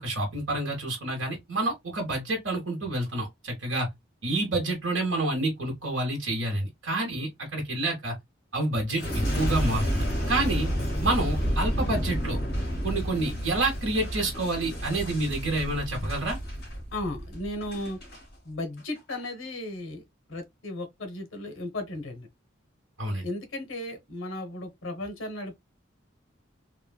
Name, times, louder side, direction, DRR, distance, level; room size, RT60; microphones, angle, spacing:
voice 1, 0.0-3.9 4.2-8.1 8.5-10.7 11.0-12.4 12.8-16.4 23.0-23.2, right 2 dB, 75° right, 1.0 m, -28 dB
Boom, 8.9-18.2 18.8-19.2, equal, 50° left, 1.6 m, -30 dB
voice 2, 16.9-18.0 18.4-20.0 20.3-22.3 23.2-25.6, left 1 dB, 75° left, 0.9 m, -35 dB
3.1 x 2.3 x 2.2 m
head